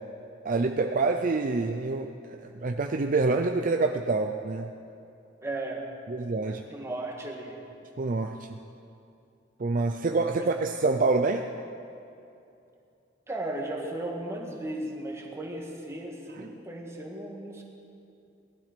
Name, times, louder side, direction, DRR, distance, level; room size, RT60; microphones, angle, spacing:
voice 1, 0.4-4.7 6.1-6.6 8.0-8.6 9.6-11.5 16.4-16.5, right 3 dB, 45° right, 5 dB, 0.5 m, -27 dB
voice 2, 5.4-5.9 6.4-7.6 10.4-10.5 13.3-17.6, right 1 dB, 15° right, 0 dB, 1.7 m, -36 dB
18.5 x 12.0 x 5.1 m, 2.7 s
head